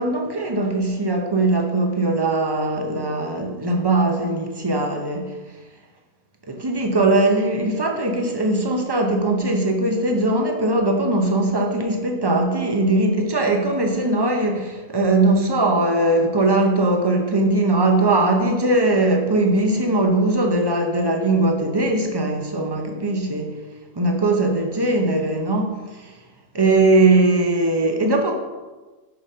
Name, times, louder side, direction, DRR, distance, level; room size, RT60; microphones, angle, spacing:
voice 1, 0.0-5.4 6.4-23.5 24.0-26.1 26.5-28.3, right 2 dB, 30° right, 3 dB, 0.4 m, -20 dB
5.9 x 5.1 x 5.5 m, 1.2 s
omnidirectional pair, 1.6 m